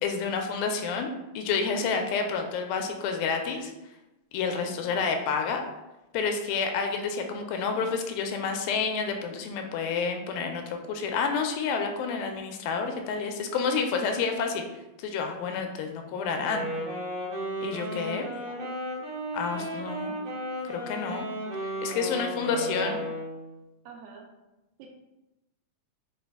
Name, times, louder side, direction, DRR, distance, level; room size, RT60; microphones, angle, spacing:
voice 1, 0.0-1.1 1.4-3.7 4.3-5.6 6.1-14.6 15.0-16.7 17.6-18.3 19.3-20.2 20.6-21.3 21.8-23.0, left 5 dB, 85° left, 4 dB, 2.3 m, -29 dB
voice 2, 4.7-5.2 18.0-18.8 19.5-20.2 22.1-23.1 23.9-24.3 24.8-24.9, right 5 dB, 90° right, 0 dB, 2.3 m, -43 dB
Wind instrument woodwind instrument, 16.4-23.5, equal, 60° right, 1.6 m, -34 dB
5.8 x 2.3 x 3.4 m, 0.98 s
omnidirectional pair, 4.0 m